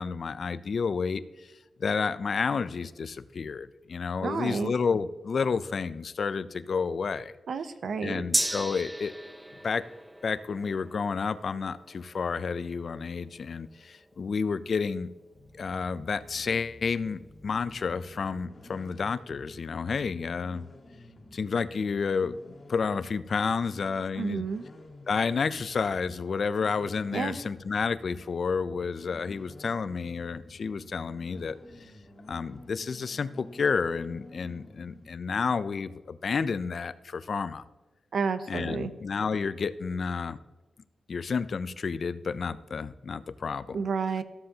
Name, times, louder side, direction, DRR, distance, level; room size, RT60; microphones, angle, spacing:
voice 1, 0.0-1.5 1.8-7.3 8.0-9.1 9.6-9.8 10.2-15.1 15.5-20.7 21.3-24.5 25.1-31.6 32.3-37.6 38.5-40.4 41.1-43.8, left 5 dB, 60° left, 15 dB, 0.4 m, -30 dB
voice 2, 4.2-4.7 7.5-8.2 24.2-24.6 27.1-27.4 38.1-38.9 43.7-44.2, right 5 dB, 75° right, 12 dB, 0.6 m, -30 dB
Gong, 8.3-16.1 16.4-16.5, right 1 dB, 10° right, 0.5 m, -37 dB
sound 1, 15.3-35.2, left 1 dB, 40° left, 2.0 m, -51 dB
13.5 x 7.6 x 2.8 m, 1.1 s
cardioid pair, 70°, 0 cm